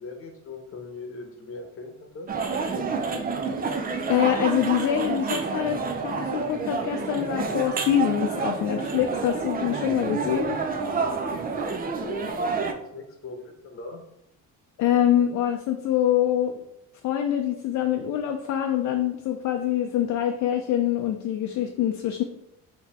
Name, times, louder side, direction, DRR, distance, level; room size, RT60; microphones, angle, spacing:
voice 1, 0.0-2.4 11.5-14.0, left 3 dB, 45° left, 4 dB, 0.9 m, -40 dB
sound 1, 2.3-12.7, right 4 dB, 30° right, 0.4 m, -29 dB
voice 2, 4.1-10.6 14.8-16.6 17.0-22.2, left 10 dB, 60° left, 4 dB, 0.5 m, -25 dB
4.0 x 2.8 x 4.1 m, 0.81 s
cardioid pair, 130°, 32 cm